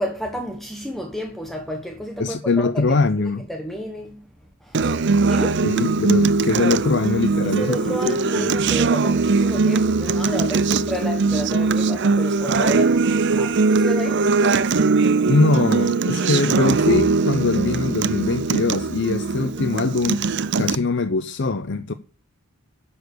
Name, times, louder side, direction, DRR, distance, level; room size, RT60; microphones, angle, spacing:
voice 1, 0.0-3.2 3.5-4.2 4.6-4.8 5.2-5.7 7.4-13.0 13.3-14.7 19.4-19.8, equal, ahead, 1.2 m, -31 dB
voice 2, 2.2-3.4 5.6-8.5 15.3-20.2 20.6-21.9, left 3 dB, 55° left, 0.6 m, -22 dB
Acoustic guitar, 4.7-20.8, right 4 dB, 55° right, 0.6 m, -20 dB
11.0 x 7.1 x 6.7 m
head